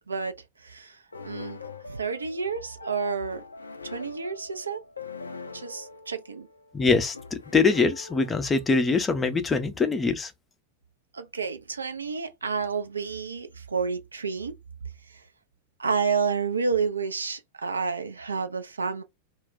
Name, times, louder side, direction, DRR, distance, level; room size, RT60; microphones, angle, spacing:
voice 1, 0.1-1.0 1.2-1.6 1.9-3.4 3.8-4.8 5.5-6.5 11.1-14.5 15.1-15.2 15.8-19.0, right 5 dB, 75° right, 0.4 m, -30 dB
sound 1, 1.1-8.8, left 4 dB, 75° left, 0.3 m, -43 dB
voice 2, 6.7-10.3, left 4 dB, 15° left, 0.5 m, -23 dB
2.2 x 2.2 x 3.8 m
figure-of-eight pair, 90°, 0 cm